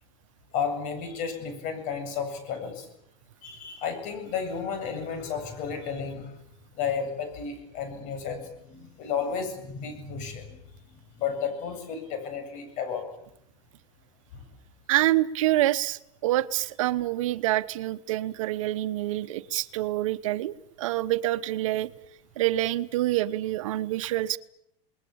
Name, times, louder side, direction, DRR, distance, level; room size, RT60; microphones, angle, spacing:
voice 1, 0.5-2.9 3.4-6.3 6.7-10.6 11.2-13.1, left 6 dB, 50° left, 8 dB, 7.9 m, -32 dB
voice 2, 14.9-21.9 22.4-24.4, right 15 dB, 80° right, 14 dB, 1.1 m, -26 dB
28.0 x 20.5 x 8.7 m, 0.79 s
supercardioid pair, 130°, 16 cm